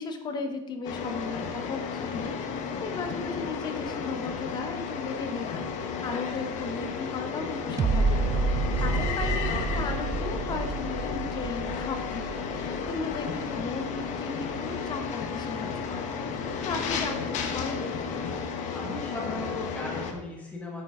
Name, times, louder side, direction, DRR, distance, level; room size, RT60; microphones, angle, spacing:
voice 1, 0.0-2.3 2.8-8.2 8.8-16.1 16.6-17.9, left 4 dB, 25° left, 6 dB, 1.0 m, -36 dB
sound 1, 0.8-20.1, left 6 dB, 50° left, 1.1 m, -33 dB
sound 2, 7.8-14.8 15.3-15.4, right 4 dB, 20° right, 0.5 m, -30 dB
voice 2, 8.7-9.1 18.7-20.8, left 2 dB, 10° left, -2 dB, 1.7 m, -38 dB
9.2 x 8.4 x 3.7 m, 0.93 s
cardioid pair, 165°, 16 cm